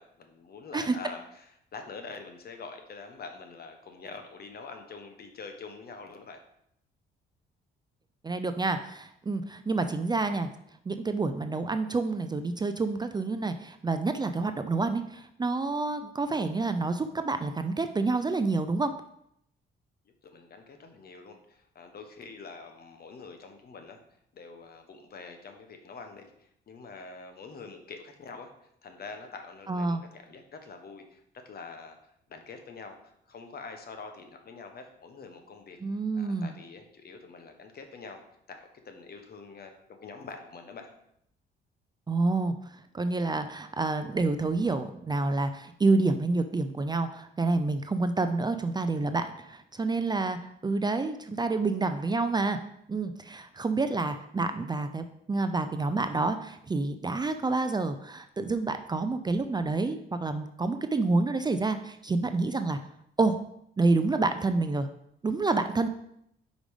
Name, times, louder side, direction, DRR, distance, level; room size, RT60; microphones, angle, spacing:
voice 1, 0.0-6.4 20.2-24.0 24.3-35.8 36.1-38.2 38.5-40.9, left 4 dB, 50° left, 5 dB, 1.2 m, -45 dB
voice 2, 8.2-10.5 10.9-18.9 29.7-30.0 35.8-36.6 42.1-42.5 42.9-50.4 50.6-52.6 52.9-62.8 63.2-63.4 63.8-64.9 65.2-65.9, right 3 dB, 20° right, 8 dB, 0.4 m, -28 dB
5.2 x 5.0 x 4.9 m, 0.74 s
cardioid pair, 90°, 20 cm